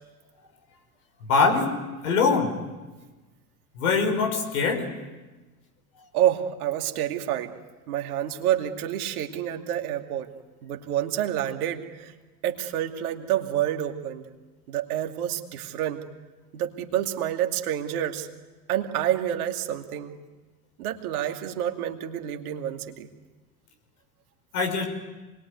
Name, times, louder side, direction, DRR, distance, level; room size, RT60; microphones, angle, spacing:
voice 1, 1.2-1.7 2.0-2.5 3.7-4.9 24.5-24.9, left 4 dB, 75° left, 3 dB, 5.6 m, -23 dB
voice 2, 6.1-7.5 7.9-10.3 10.6-12.1 12.4-14.3 14.7-16.0 16.5-18.3 18.7-20.1 20.8-23.1, right 11 dB, 70° right, 4 dB, 2.6 m, -28 dB
27.0 x 21.5 x 9.6 m, 1.2 s
hypercardioid pair, 80°, 46 cm